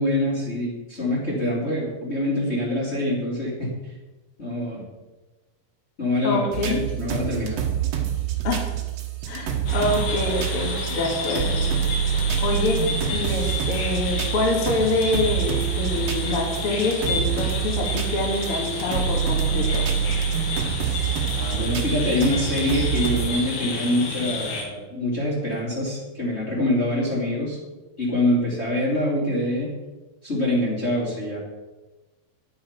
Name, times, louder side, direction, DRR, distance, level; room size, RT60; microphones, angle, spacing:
voice 1, 0.0-3.7 4.4-4.9 6.0-7.6 21.3-27.6 28.0-29.7 30.2-31.4, left 1 dB, 20° left, -5 dB, 2.6 m, -25 dB
voice 2, 6.2-6.8 8.4-8.7 9.3-11.7 12.1-12.8 13.1-19.8, left 2 dB, 45° left, 0 dB, 2.3 m, -26 dB
sound 1, 6.5-23.3, right 9 dB, 60° right, 2.0 m, -26 dB
sound 2, 9.7-24.6, left 3 dB, 80° left, 4.0 m, -31 dB
10.5 x 9.3 x 5.8 m, 1.2 s
omnidirectional pair, 4.1 m